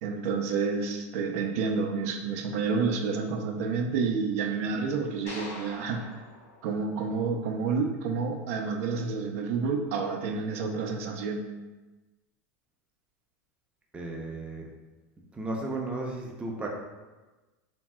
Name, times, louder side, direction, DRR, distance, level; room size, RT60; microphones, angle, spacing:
voice 1, 0.0-6.0 6.6-11.5, right 5 dB, 70° right, 3 dB, 0.4 m, -29 dB
sound 1, 5.3-7.6, left 2 dB, 85° left, 0.8 m, -44 dB
voice 2, 13.9-14.7 15.3-16.7, right 2 dB, 15° right, -1 dB, 0.4 m, -34 dB
3.0 x 2.6 x 2.2 m, 1.2 s
supercardioid pair, 110°, 8 cm